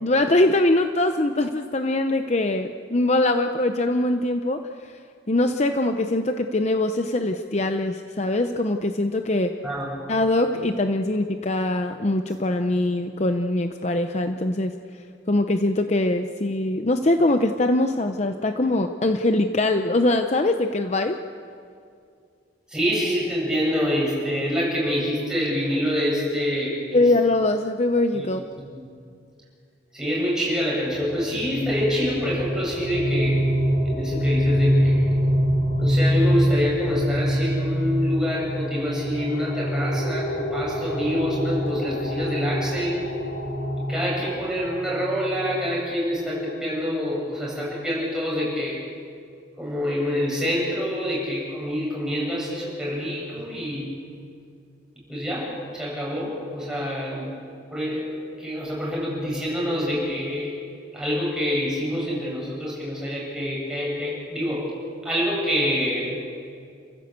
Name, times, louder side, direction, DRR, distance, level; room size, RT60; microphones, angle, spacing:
voice 1, 0.0-4.6 4.9-5.0 5.3-9.5 10.1-14.7 15.3-21.2 26.9-28.4, left 2 dB, 35° left, 6 dB, 0.7 m, -22 dB
voice 2, 22.7-27.1 28.1-28.3 28.7-28.8 29.9-33.4 33.8-35.1 35.8-43.0 43.9-48.8 49.6-53.9 55.1-57.3 57.7-60.6 60.9-64.7 65.0-66.2, equal, 5° right, -5 dB, 7.9 m, -26 dB
sound 1, 30.9-45.7, equal, 55° left, 3.1 m, -25 dB
29.5 x 15.0 x 8.1 m, 2.3 s
head